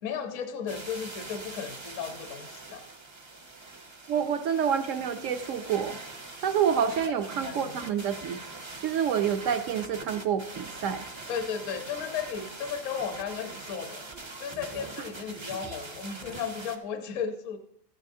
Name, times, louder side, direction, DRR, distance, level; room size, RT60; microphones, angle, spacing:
voice 1, 0.0-2.8 7.3-7.8 11.3-14.0 14.4-17.6, left 7 dB, 60° left, 6 dB, 1.0 m, -35 dB
sound 1, 0.7-16.8, right 3 dB, 35° right, 0.4 m, -43 dB
voice 2, 4.1-6.0 6.4-8.4 8.8-11.0, right 8 dB, 65° right, 9 dB, 0.8 m, -28 dB
14.0 x 9.0 x 2.7 m, 0.73 s
omnidirectional pair, 1.7 m